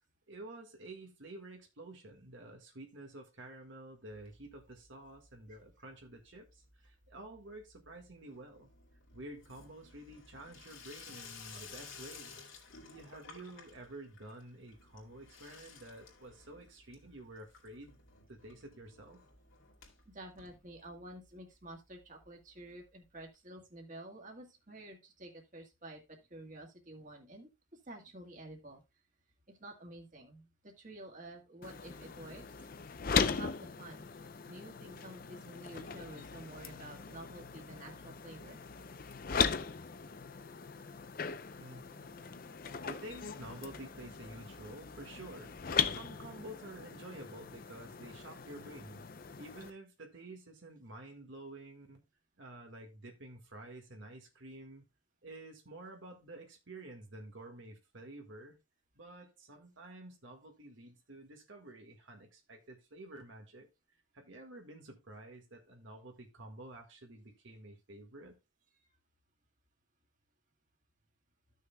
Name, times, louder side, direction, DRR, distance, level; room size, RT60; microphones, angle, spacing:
voice 1, 0.3-8.7 9.1-12.4 12.8-18.0 18.3-19.2 41.6-42.5 42.8-45.5 45.9-49.0 49.4-52.0 52.4-54.8 55.2-58.6 58.9-63.7 64.1-68.3, right 1 dB, 70° right, 1.6 m, -50 dB
Water tap faucet / Sink (filling or washing), 4.1-4.9 5.1-5.7 6.0-21.3 21.6-21.7 21.9-22.0 22.2-22.3 23.3-23.4, left 5 dB, 75° left, 2.5 m, -55 dB
voice 2, 20.1-27.5 27.9-28.8 29.5-32.4 33.2-34.1 34.5-38.6, right 1 dB, 40° right, 1.9 m, -50 dB
sound 1, 31.6-49.7, left 6 dB, 45° left, 0.5 m, -39 dB
14.5 x 6.4 x 2.2 m
head